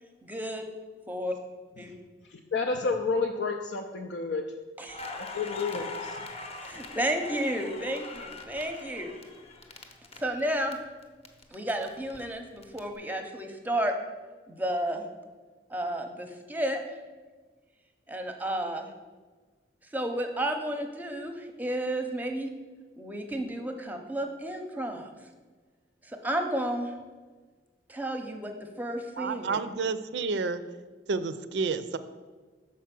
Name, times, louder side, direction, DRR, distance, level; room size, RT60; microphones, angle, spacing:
voice 1, 0.2-0.7 1.1-1.3 1.8-1.9 4.8-5.0 6.6-9.1 10.2-10.8 11.5-13.9 14.5-15.0 15.7-16.8 18.1-18.9 19.9-22.5 23.0-25.1 26.0-26.9 27.9-29.6, right 1 dB, 10° right, 5 dB, 0.7 m, -32 dB
voice 2, 2.5-4.4 5.3-6.2, left 4 dB, 80° left, 3 dB, 0.5 m, -30 dB
Crackle, 4.9-10.7 11.0-12.8, left 3 dB, 35° left, 0.7 m, -41 dB
voice 3, 29.2-30.6 31.1-32.0, right 4 dB, 75° right, 13 dB, 0.4 m, -30 dB
6.3 x 4.6 x 5.9 m, 1.4 s
head